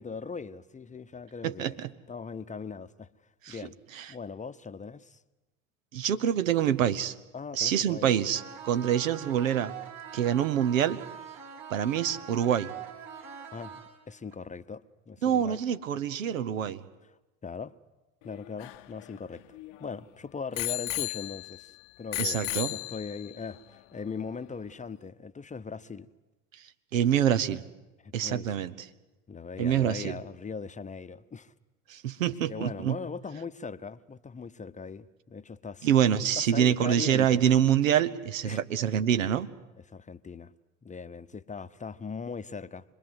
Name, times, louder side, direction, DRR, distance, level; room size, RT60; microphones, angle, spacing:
voice 1, 0.0-1.8 2.1-3.1 3.5-3.8 4.1-5.2 7.3-8.1 13.5-15.6 17.4-17.7 18.2-19.4 19.8-21.7 22.0-26.1 28.0-28.5 29.3-31.5 32.4-35.9 36.4-37.4 38.4-38.6 39.9-40.5 40.8-42.9, left 5 dB, 20° left, 0.9 m, -40 dB
voice 2, 1.4-1.9 3.4-3.6 3.9-4.2 5.9-7.1 7.5-9.7 10.1-11.0 11.7-12.7 15.2-16.8 22.2-22.7 26.9-27.6 28.1-28.7 29.6-30.2 31.9-33.0 35.8-39.5, right 9 dB, 80° right, 1.1 m, -26 dB
sound 1, 8.3-14.3, right 7 dB, 60° right, 4.6 m, -44 dB
Bicycle bell, 18.3-19.9 20.6-21.7 22.1-23.4 24.1-24.2, left 18 dB, 60° left, 0.9 m, -35 dB
26.5 x 21.5 x 8.0 m
hypercardioid pair, 70°, 39 cm